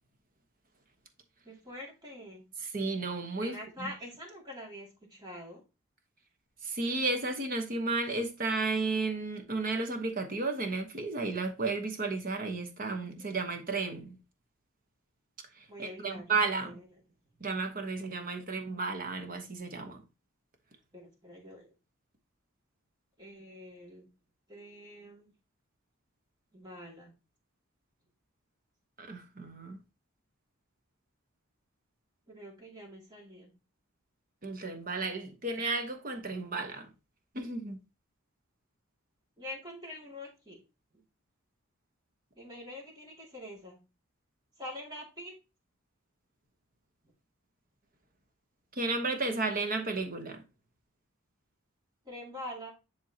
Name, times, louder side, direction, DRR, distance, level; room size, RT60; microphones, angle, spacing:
voice 1, 1.4-2.5 3.4-5.6 13.2-13.4 15.7-16.3 16.6-16.8 20.9-21.7 23.2-24.1 24.5-25.3 26.5-27.1 32.3-33.5 39.4-40.6 42.4-43.8 44.6-45.3 52.0-52.7, left 1 dB, 20° right, 2.3 m, -45 dB
voice 2, 2.6-3.9 6.6-14.2 15.6-16.8 17.4-20.0 29.0-29.8 34.4-36.9 37.3-37.8 48.7-50.4, right 3 dB, 40° right, 1.1 m, -33 dB
10.0 x 3.7 x 2.9 m
head